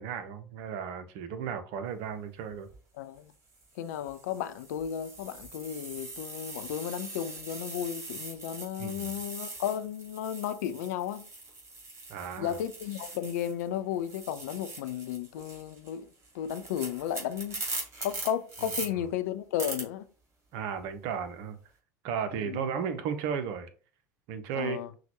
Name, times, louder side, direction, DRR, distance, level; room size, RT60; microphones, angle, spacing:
voice 1, 0.0-2.7 8.8-9.1 12.1-12.6 18.9-19.1 20.5-21.6 22.0-23.7 24.3-24.8, right 7 dB, 55° right, 0.7 m, -34 dB
sound 1, 2.5-2.8 3.5-13.7 13.9-18.9 19.6-19.8, right 2 dB, 30° right, 2.3 m, -42 dB
voice 2, 3.0-3.3 3.8-11.3 12.4-16.1 16.3-17.6 18.0-20.1 22.3-22.7 24.5-24.9, left 10 dB, 65° left, 0.4 m, -34 dB
5.8 x 2.4 x 3.0 m
figure-of-eight pair, 70°, 10 cm